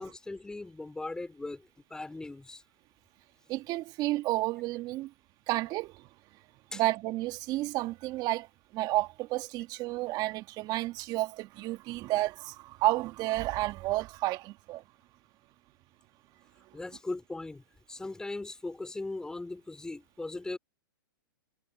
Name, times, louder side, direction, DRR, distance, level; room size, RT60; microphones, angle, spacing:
voice 1, 0.0-2.6 6.7-6.8 16.7-20.6, left 2 dB, 5° left, 2.6 m, -39 dB
voice 2, 3.5-5.1 5.5-6.1 6.7-14.8, right 18 dB, 35° right, 1.7 m, -31 dB
hypercardioid pair, 130°, 12 cm